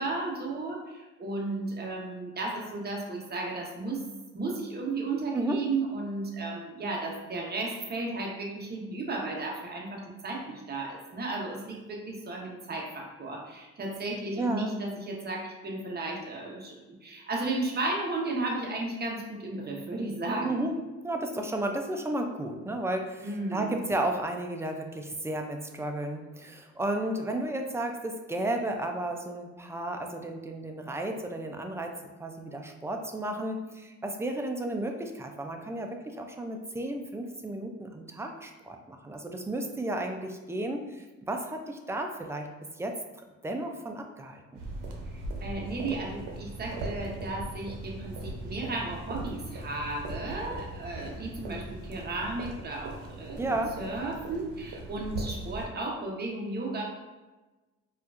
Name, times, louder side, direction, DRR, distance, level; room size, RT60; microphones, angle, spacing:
voice 1, 0.0-4.0 4.3-16.7 17.0-20.6 23.2-23.8 45.4-56.8, right 2 dB, 30° right, -1 dB, 0.8 m, -34 dB
voice 2, 14.4-14.7 20.4-20.8 21.0-42.5 42.8-42.9 43.4-44.6 53.4-53.8, right 1 dB, 10° right, 3 dB, 0.3 m, -33 dB
sound 1, 44.5-55.6, right 2 dB, 80° right, 0.7 m, -39 dB
4.3 x 2.4 x 2.5 m, 1.2 s
cardioid pair, 90°, 30 cm